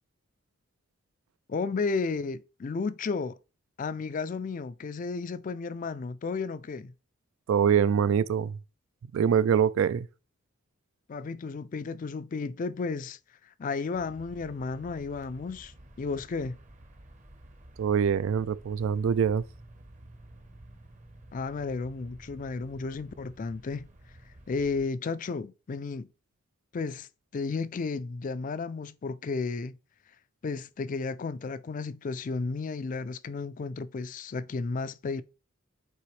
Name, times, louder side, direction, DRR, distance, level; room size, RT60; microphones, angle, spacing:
voice 1, 1.5-3.4 3.8-6.9 11.1-16.6 21.3-23.9 24.5-26.1 26.7-27.1 27.3-29.8 30.4-35.2, left 4 dB, 40° left, 0.3 m, -33 dB
voice 2, 7.5-8.6 9.1-10.1 17.8-19.4, right 7 dB, 65° right, 0.3 m, -24 dB
sound 1, 13.9-24.9, right 1 dB, 35° right, 0.8 m, -52 dB
8.5 x 4.1 x 3.2 m
head